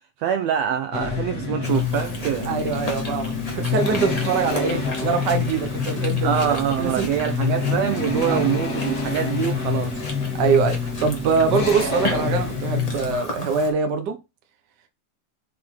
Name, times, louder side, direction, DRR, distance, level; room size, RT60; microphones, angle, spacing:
voice 1, 0.2-2.6 6.2-9.9, right 9 dB, 90° right, 1.5 m, -24 dB
sound 1, 0.9-13.1, left 5 dB, 35° left, 2.0 m, -27 dB
Chewing mastication, 1.6-13.7, left 2 dB, 55° left, 0.4 m, -35 dB
voice 2, 2.4-7.1 8.3-8.4 10.3-14.2, right 5 dB, 70° right, 1.0 m, -23 dB
6.6 x 4.2 x 4.2 m
omnidirectional pair, 3.7 m